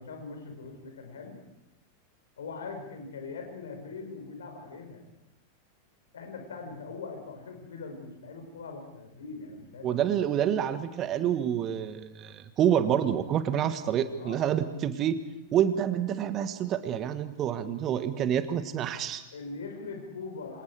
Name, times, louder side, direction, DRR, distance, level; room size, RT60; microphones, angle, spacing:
voice 1, 0.0-1.4 2.4-5.0 6.1-10.0 14.2-14.4 19.3-20.6, left 4 dB, 65° left, 4 dB, 5.5 m, -41 dB
voice 2, 9.8-15.1 15.5-19.2, right 9 dB, 30° right, 11 dB, 1.6 m, -27 dB
27.5 x 26.5 x 4.9 m, 0.94 s
figure-of-eight pair, 90°, 0 cm